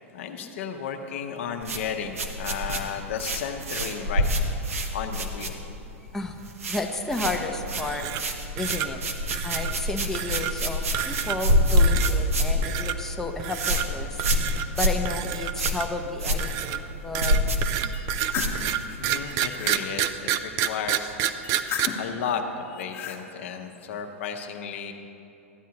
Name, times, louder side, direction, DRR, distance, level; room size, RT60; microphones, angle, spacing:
voice 1, 0.1-4.3 4.9-5.6 19.0-21.2 22.0-24.9, left 7 dB, 65° left, 5 dB, 0.8 m, -33 dB
sound 1, 1.6-6.0 6.2-6.8 7.1-19.1, equal, 80° right, 0.9 m, -26 dB
voice 2, 6.7-9.0 9.4-14.2 14.7-17.4, left 2 dB, 5° left, 2 dB, 0.6 m, -32 dB
sound 2, 7.7-8.3 8.6-8.9 9.3-9.7 10.1-10.5 10.9-11.5 11.8-12.1 12.6-12.9 13.4-13.9 14.2-14.7 15.0-16.0 16.4-21.9, right 11 dB, 45° right, 0.4 m, -29 dB
sound 3, 17.9-18.6 19.2-19.8 21.4-22.1 22.7-23.2, left 7 dB, 35° left, 1.0 m, -34 dB
13.5 x 9.2 x 2.9 m, 2.8 s
hypercardioid pair, 100°, 7 cm